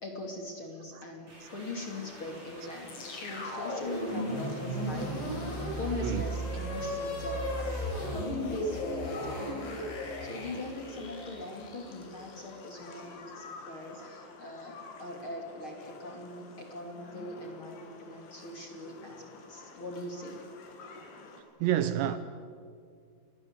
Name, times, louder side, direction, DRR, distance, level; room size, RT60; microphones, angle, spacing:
voice 1, 0.0-9.7 9.9-20.4, left 2 dB, 35° left, 2.8 m, -41 dB
sound 1, 1.3-8.1, right 1 dB, 30° right, 9.1 m, -51 dB
sound 2, 1.7-21.4, left 4 dB, 90° left, 5.6 m, -50 dB
sound 3, 2.9-13.1, equal, 70° left, 7.5 m, -35 dB
voice 2, 21.6-22.2, right 11 dB, 75° right, 2.9 m, -29 dB
30.0 x 21.5 x 8.2 m
omnidirectional pair, 5.5 m